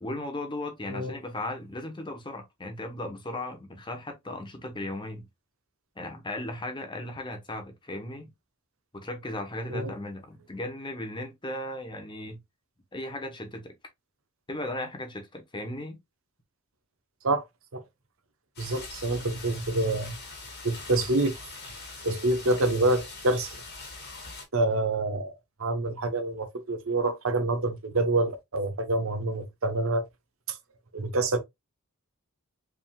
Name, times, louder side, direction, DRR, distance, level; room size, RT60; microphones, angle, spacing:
voice 1, 0.0-5.3 6.0-8.3 8.9-12.4 12.9-13.7 14.5-16.0, left 1 dB, 20° left, 0.9 m, -36 dB
sound 1, 18.6-24.5, left 3 dB, 45° left, 2.3 m, -42 dB
voice 2, 18.6-20.1 20.6-21.4 22.0-23.6 24.5-25.3 25.6-30.1 30.5-30.6 30.9-31.4, right 2 dB, 65° right, 0.9 m, -27 dB
4.9 x 3.7 x 2.3 m
head